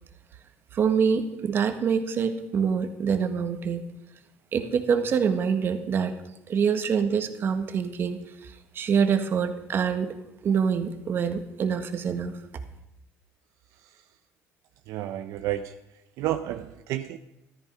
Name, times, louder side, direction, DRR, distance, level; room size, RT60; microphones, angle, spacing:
voice 1, 0.7-3.8 4.5-6.1 6.5-10.1 10.4-12.4, right 6 dB, 45° right, 8 dB, 1.6 m, -25 dB
voice 2, 14.9-15.7 16.2-17.2, right 13 dB, 75° right, 8 dB, 0.7 m, -30 dB
14.0 x 13.0 x 5.5 m, 0.91 s
cardioid pair, 120°, 5 cm